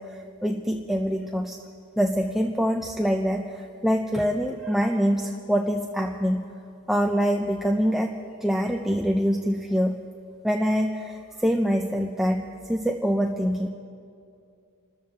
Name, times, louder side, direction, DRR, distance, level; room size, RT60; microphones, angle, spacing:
voice 1, 0.0-1.6 2.0-6.5 6.9-8.2 8.4-10.0 10.4-13.7, equal, ahead, 1 dB, 0.5 m, -25 dB
28.5 x 13.5 x 3.3 m, 2.5 s
head